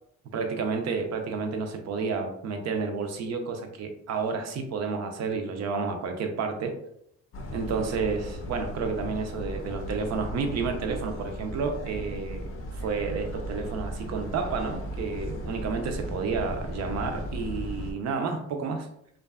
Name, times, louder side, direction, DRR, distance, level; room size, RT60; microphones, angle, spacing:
voice 1, 0.3-6.7 7.5-18.9, right 4 dB, 60° right, 5 dB, 0.5 m, -30 dB
sound 1, 7.3-17.9, equal, 45° left, 0.5 m, -36 dB
2.5 x 2.3 x 2.3 m, 0.73 s
cardioid pair, 90°, 30 cm